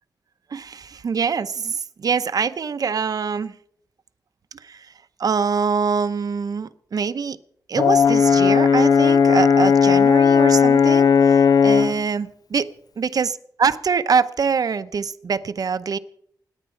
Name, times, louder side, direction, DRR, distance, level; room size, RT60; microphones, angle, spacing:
voice 1, 0.5-3.5 4.5-4.9 5.2-7.4 7.7-12.7 13.0-16.0, right 6 dB, 55° right, 13 dB, 0.7 m, -24 dB
Brass instrument, 7.8-12.0, left 6 dB, 60° left, 0.7 m, -15 dB
28.5 x 9.9 x 4.5 m, 0.67 s
wide cardioid pair, 170°, 7 cm